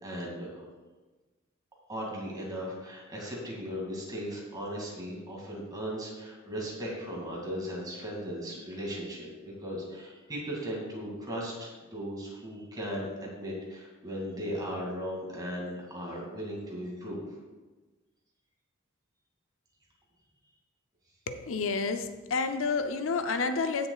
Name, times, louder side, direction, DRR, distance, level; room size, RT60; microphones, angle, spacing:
voice 1, 0.0-0.7 1.9-17.2, equal, 20° right, -3 dB, 2.3 m, -37 dB
voice 2, 21.3-23.9, left 4 dB, 75° left, 7 dB, 0.6 m, -30 dB
15.0 x 6.9 x 2.4 m, 1.2 s
head